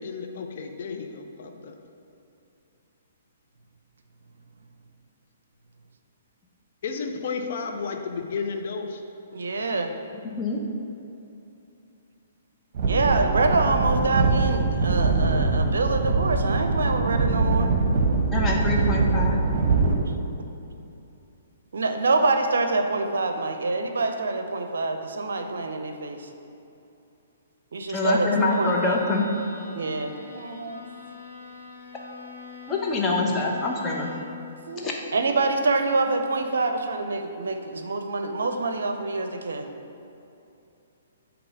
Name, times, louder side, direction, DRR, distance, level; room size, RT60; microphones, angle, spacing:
voice 1, 0.0-1.8 6.8-9.0, left 5 dB, 55° left, 4 dB, 0.6 m, -32 dB
voice 2, 9.3-9.9 12.8-17.7 19.9-20.2 21.7-26.3 27.7-29.0 29.7-30.8 34.7-39.7, right 3 dB, 70° right, 6 dB, 0.5 m, -26 dB
sound 1, 12.7-20.0, right 3 dB, 45° right, 0.9 m, -23 dB
voice 3, 18.3-19.4 27.9-29.2 32.7-34.1 34.8-34.9, left 3 dB, 20° left, -1 dB, 0.9 m, -25 dB
Bowed string instrument, 28.2-34.4, left 3 dB, 90° left, 1.4 m, -42 dB
8.5 x 2.9 x 5.3 m, 2.8 s
figure-of-eight pair, 125°, 0 cm